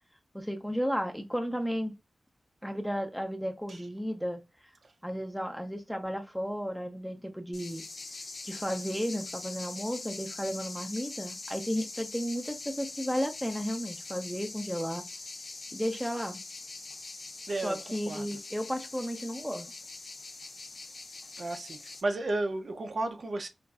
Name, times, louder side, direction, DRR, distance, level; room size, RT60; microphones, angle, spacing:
voice 1, 0.3-1.9 2.6-4.4 5.0-7.8 8.4-15.0 15.7-16.4 17.6-19.7, equal, ahead, 0.6 m, -33 dB
sound 1, 7.5-22.0, left 3 dB, 65° left, 0.7 m, -43 dB
voice 2, 17.5-17.8 18.1-18.3 21.4-23.5, right 2 dB, 55° right, 0.5 m, -33 dB
4.0 x 2.5 x 2.3 m
wide cardioid pair, 130°, 0 cm